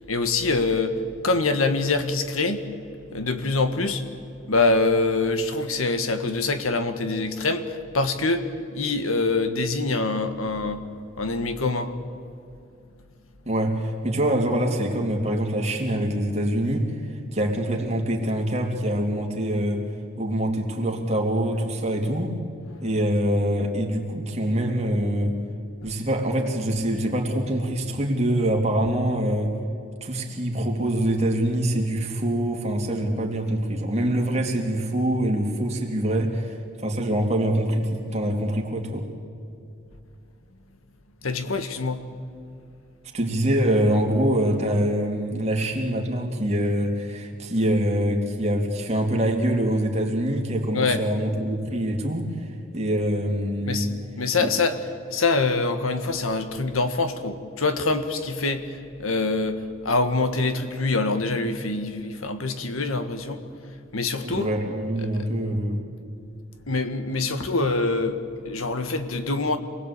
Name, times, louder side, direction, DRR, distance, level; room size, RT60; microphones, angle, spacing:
voice 1, 0.1-1.0 1.2-2.6 3.1-4.0 4.5-10.8 11.2-11.9 22.7-22.9 25.8-25.9 41.2-42.0 50.7-51.0 53.7-53.9 54.2-54.8 55.1-63.4 63.9-64.5 65.1-65.3 66.7-68.2 68.4-69.6, left 3 dB, 90° left, 9 dB, 1.7 m, -25 dB
voice 2, 13.5-17.0 17.3-19.9 20.2-22.3 22.8-25.4 25.8-29.6 30.0-39.1 43.1-52.3 52.7-53.9 54.4-54.5 64.2-65.8, right 1 dB, 30° right, 1 dB, 2.9 m, -24 dB
27.0 x 20.5 x 8.5 m, 2.5 s
head